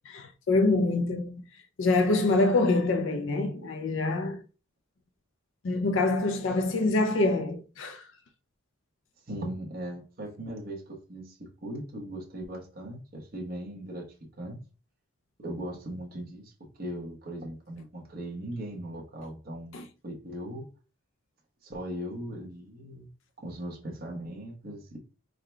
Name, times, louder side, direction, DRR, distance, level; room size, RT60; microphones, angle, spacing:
voice 1, 0.1-4.4 5.6-8.1 19.7-19.9, left 2 dB, 60° left, 0.4 m, -26 dB
voice 2, 9.3-14.6 15.4-16.5 16.8-20.7 21.6-23.1 23.4-25.0, right 1 dB, 45° right, 1.0 m, -39 dB
3.7 x 2.2 x 4.4 m
head